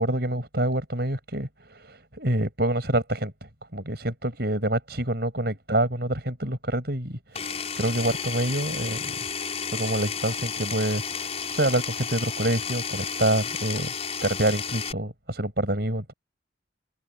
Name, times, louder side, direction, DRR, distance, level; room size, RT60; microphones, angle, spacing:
voice 1, 0.0-3.3 3.7-9.1 9.7-13.9 14.2-16.1, right 1 dB, 55° right, 7.7 m, -27 dB
Power tool, 7.3-14.9, left 6 dB, 35° left, 6.1 m, -32 dB
head